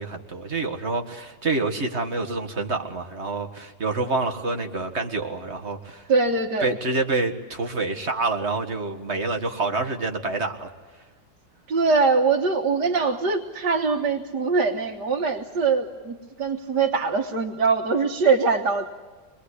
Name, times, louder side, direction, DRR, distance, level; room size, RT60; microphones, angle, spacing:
voice 1, 0.0-6.1 6.6-10.7, right 3 dB, 40° right, 5 dB, 2.1 m, -27 dB
voice 2, 6.1-6.8 11.7-18.9, right 4 dB, 90° right, 0 dB, 2.0 m, -22 dB
25.5 x 21.5 x 8.4 m, 1.4 s
omnidirectional pair, 1.7 m